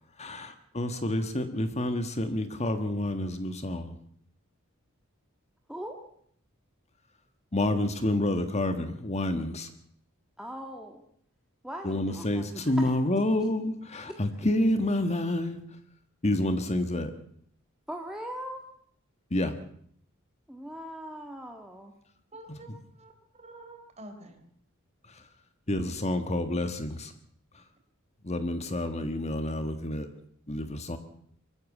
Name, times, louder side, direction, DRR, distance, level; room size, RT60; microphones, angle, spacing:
voice 1, 0.2-4.0 7.5-9.7 11.8-15.6 16.2-17.1 19.3-19.6 22.7-22.8 25.1-25.2 25.7-27.1 27.5-27.6 28.2-30.1 30.5-31.0, left 1 dB, 30° left, 8 dB, 1.6 m, -29 dB
voice 2, 5.7-6.1 10.4-11.0 11.6-12.7 17.9-18.6 20.5-21.9, equal, 5° right, 1 dB, 1.7 m, -40 dB
voice 3, 22.3-24.4, right 1 dB, 30° right, 6 dB, 4.0 m, -48 dB
24.0 x 13.5 x 8.6 m, 0.64 s
head